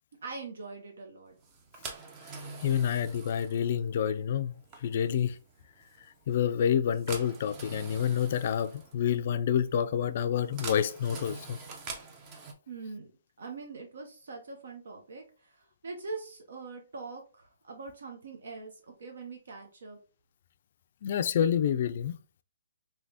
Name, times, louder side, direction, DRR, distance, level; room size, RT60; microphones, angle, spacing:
voice 1, 0.2-1.4 12.7-13.1 13.4-18.7 19.0-20.0, right 4 dB, 75° right, 0.7 m, -43 dB
sound 1, 1.4-12.5, right 4 dB, 25° right, 0.6 m, -45 dB
voice 2, 2.6-4.5 4.8-5.4 6.3-11.6 21.0-22.2, left 9 dB, 50° left, 0.3 m, -28 dB
3.3 x 2.8 x 2.7 m
hypercardioid pair, 155°, 0 cm